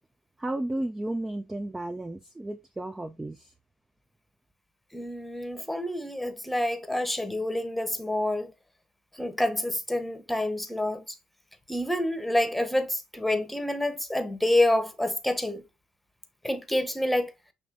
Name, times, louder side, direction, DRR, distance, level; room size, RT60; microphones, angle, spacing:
voice 1, 0.4-3.5, right 1 dB, 15° right, 0.4 m, -33 dB
voice 2, 4.9-8.5 9.2-11.0 11.7-15.6 16.4-17.3, left 1 dB, 5° left, 0.9 m, -27 dB
6.1 x 3.0 x 2.6 m
hypercardioid pair, 60°, 3 cm